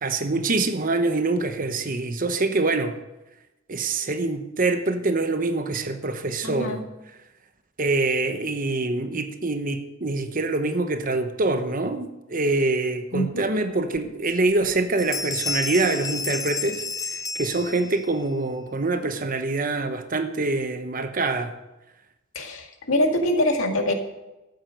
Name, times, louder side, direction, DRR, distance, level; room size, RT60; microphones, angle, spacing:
voice 1, 0.0-2.9 3.7-6.8 7.8-21.5, right 3 dB, 40° right, 8 dB, 1.0 m, -25 dB
voice 2, 6.4-6.8 13.1-13.4 22.4-23.9, left 1 dB, 85° left, 4 dB, 2.0 m, -24 dB
sound 1, 13.9-14.0 14.5-14.7 15.0-18.1, left 4 dB, 15° left, 0.5 m, -31 dB
13.0 x 9.2 x 6.5 m, 0.99 s
head